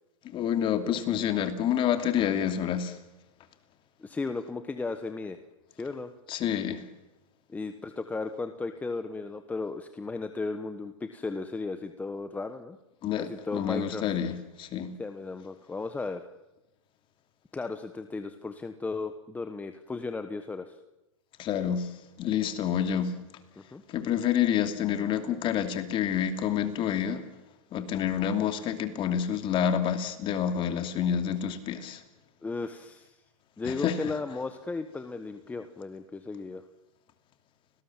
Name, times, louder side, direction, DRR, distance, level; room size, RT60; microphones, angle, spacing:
voice 1, 0.2-3.0 6.3-6.8 13.0-14.9 21.4-21.9 22.2-23.1 23.9-27.2 27.7-32.0 33.6-34.1, left 9 dB, 30° left, 2.7 m, -28 dB
voice 2, 4.0-5.4 5.8-6.1 7.5-12.8 13.2-14.0 15.0-16.3 17.5-20.8 23.6-23.8 32.4-33.2 33.6-36.6, left 3 dB, 10° left, 1.2 m, -35 dB
30.0 x 19.5 x 7.4 m
hypercardioid pair, 135°, 18 cm